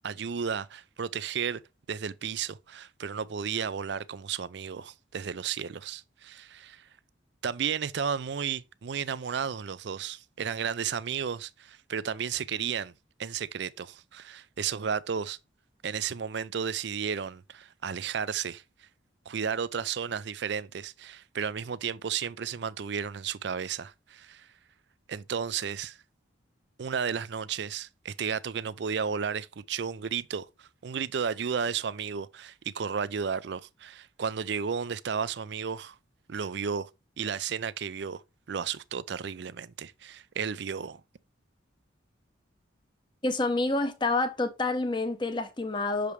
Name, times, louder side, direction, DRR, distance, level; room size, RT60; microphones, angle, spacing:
voice 1, 0.0-1.6 1.9-6.9 7.4-12.9 13.2-15.4 15.8-18.6 19.3-24.5 25.1-26.0 26.8-36.0 36.3-36.9 37.2-38.2 38.5-41.0, right 7 dB, 60° right, 0.4 m, -33 dB
voice 2, 43.2-46.1, left 2 dB, 25° left, 0.8 m, -28 dB
6.8 x 5.0 x 3.1 m
head